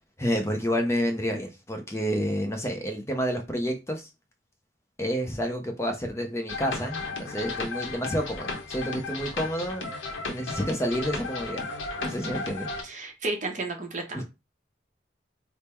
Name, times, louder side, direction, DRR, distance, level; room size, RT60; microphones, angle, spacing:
voice 1, 0.2-4.1 5.0-9.8 10.3-11.6 12.0-12.7 14.1-14.2, equal, 15° left, 0.5 m, -29 dB
sound 1, 6.5-12.8, left 3 dB, 85° left, 0.9 m, -34 dB
voice 2, 12.0-12.4 12.8-14.2, right 2 dB, 40° right, 0.8 m, -33 dB
3.4 x 2.0 x 4.3 m
head